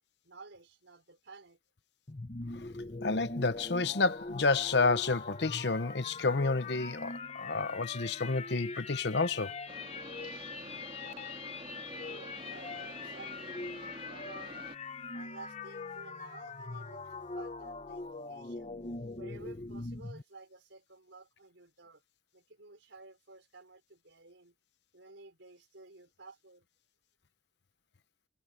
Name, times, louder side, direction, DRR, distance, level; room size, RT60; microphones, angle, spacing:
voice 1, 0.2-1.6 11.8-14.6 15.1-18.0 18.3-18.8 19.2-22.0 22.3-24.5 24.9-26.7, right 3 dB, 90° right, 4.3 m, -53 dB
sound 1, 2.1-20.2, left 3 dB, 35° left, 0.9 m, -42 dB
voice 2, 3.0-9.5, left 3 dB, 65° left, 0.9 m, -30 dB
sound 2, 9.7-14.8, right 2 dB, 30° right, 2.4 m, -48 dB
head